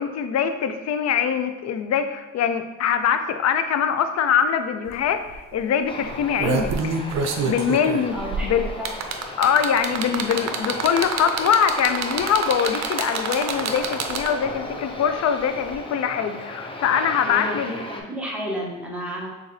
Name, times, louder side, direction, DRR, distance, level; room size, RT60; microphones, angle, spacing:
voice 1, 0.0-7.0 7.5-8.1 8.4-8.7 9.4-17.7, left 7 dB, 60° left, 8 dB, 0.5 m, -23 dB
sound 1, 4.9-5.0 5.3-5.5 6.1-14.5 15.7-15.8, right 5 dB, 60° right, 0.6 m, -27 dB
Aircraft, 5.9-18.0, left 1 dB, 20° left, 0.6 m, -35 dB
voice 2, 8.1-9.0 17.3-19.3, equal, 5° right, -3 dB, 1.1 m, -32 dB
6.4 x 2.6 x 3.2 m, 1.1 s
cardioid pair, 90°, 30 cm